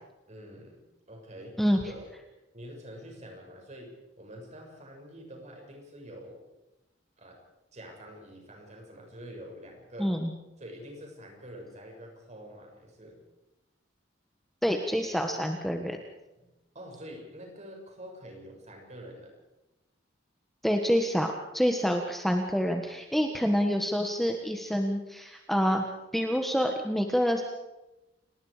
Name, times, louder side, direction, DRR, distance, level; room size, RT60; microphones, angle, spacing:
voice 1, 0.3-2.1 2.5-6.5 7.2-7.4 7.7-10.2 10.6-13.2 16.4-19.4, equal, 40° right, 1 dB, 6.8 m, -46 dB
voice 2, 10.0-10.3 14.6-16.0 20.6-25.8 26.1-27.4, equal, ahead, 3 dB, 1.5 m, -27 dB
30.0 x 19.0 x 5.1 m, 1.0 s
head